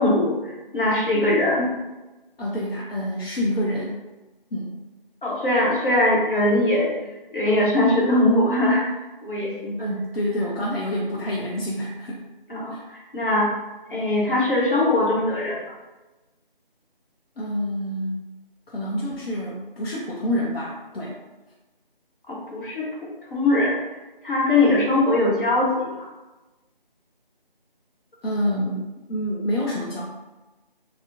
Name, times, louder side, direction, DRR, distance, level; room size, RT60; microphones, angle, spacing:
voice 1, 0.0-1.7 5.2-6.9 7.3-8.8 9.2-9.8 12.5-13.5 13.9-15.7 22.3-23.8 24.2-26.1, left 1 dB, 60° left, -4 dB, 0.9 m, -21 dB
voice 2, 2.4-4.0 4.5-4.7 9.8-12.2 12.7-12.8 17.4-18.2 18.7-21.2 28.2-30.0, equal, 85° left, -4 dB, 0.6 m, -27 dB
2.4 x 2.0 x 2.6 m, 1.1 s
figure-of-eight pair, 170°, 29 cm